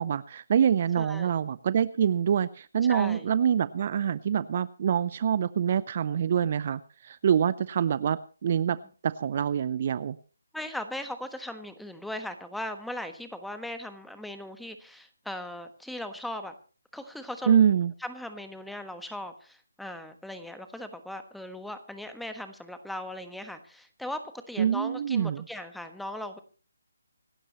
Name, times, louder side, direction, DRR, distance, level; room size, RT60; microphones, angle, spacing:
voice 1, 0.0-8.8 9.0-10.2 17.5-17.9 24.6-25.5, right 8 dB, 40° right, 17 dB, 0.6 m, -25 dB
voice 2, 1.0-1.3 2.8-3.3 8.7-8.8 10.5-16.5 16.9-17.6 18.0-26.4, left 1 dB, ahead, 8 dB, 1.3 m, -38 dB
26.0 x 12.5 x 3.0 m, 0.37 s
figure-of-eight pair, 150°, 0 cm